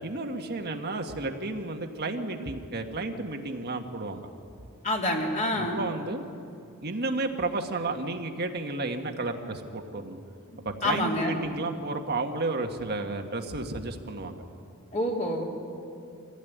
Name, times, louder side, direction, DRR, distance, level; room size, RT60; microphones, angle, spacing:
voice 1, 0.0-4.3 5.5-6.2 6.8-10.2 10.6-14.4, right 2 dB, 45° right, 4 dB, 1.6 m, -32 dB
voice 2, 4.8-5.8 10.8-11.4 14.9-15.4, left 1 dB, 35° left, -1 dB, 3.3 m, -27 dB
24.5 x 16.0 x 9.4 m, 2.6 s
head